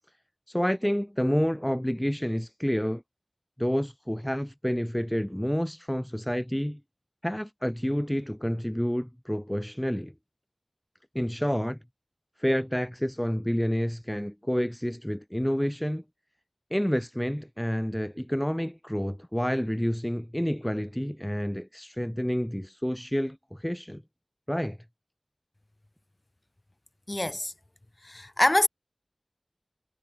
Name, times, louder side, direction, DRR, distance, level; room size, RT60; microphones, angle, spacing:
voice 1, 0.5-3.0 3.6-6.8 7.2-10.1 11.1-11.8 12.4-16.0 16.7-24.0 24.5-24.8, equal, 10° left, 0.7 m, -29 dB
voice 2, 27.1-27.5 28.0-28.7, left 1 dB, 40° left, 2.2 m, -25 dB
wide cardioid pair, 45°, 0 cm